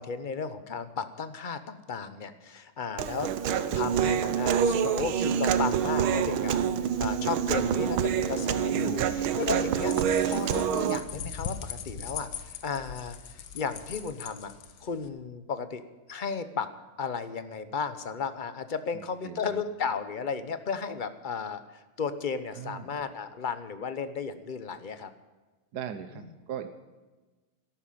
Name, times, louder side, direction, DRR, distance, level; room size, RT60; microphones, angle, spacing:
voice 1, 0.0-3.3 3.7-9.9 10.2-13.2 13.5-14.5 14.8-15.8 16.1-16.7 17.0-25.1, left 5 dB, 45° left, 11 dB, 0.6 m, -34 dB
Human voice, 3.0-11.0, right 8 dB, 90° right, 1.7 m, -26 dB
voice 2, 8.9-9.7 19.2-19.4 22.6-23.0 25.7-26.7, right 8 dB, 60° right, 9 dB, 1.3 m, -39 dB
sound 1, 9.1-15.1, left 7 dB, 75° left, 1.9 m, -40 dB
13.5 x 11.5 x 8.6 m, 1.2 s
omnidirectional pair, 2.2 m